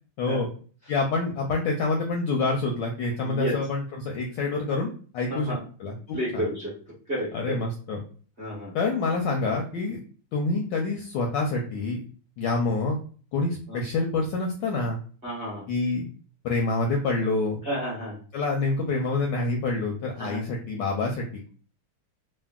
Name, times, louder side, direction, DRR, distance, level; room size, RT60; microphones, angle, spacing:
voice 1, 0.2-0.5 0.9-5.5 5.8-6.5 7.3-8.0 8.7-10.0 10.3-12.0 12.4-13.0 13.3-15.0 15.7-16.1 16.4-17.6 18.3-21.5, left 3 dB, 75° left, 0 dB, 1.0 m, -27 dB
voice 2, 3.2-3.5 5.3-5.6 6.1-6.7 7.1-7.6 8.4-8.7 13.7-13.8 15.2-15.6 17.6-18.2 20.2-20.4, equal, 40° right, -7 dB, 0.9 m, -31 dB
3.5 x 2.1 x 2.3 m, 0.40 s
omnidirectional pair, 2.3 m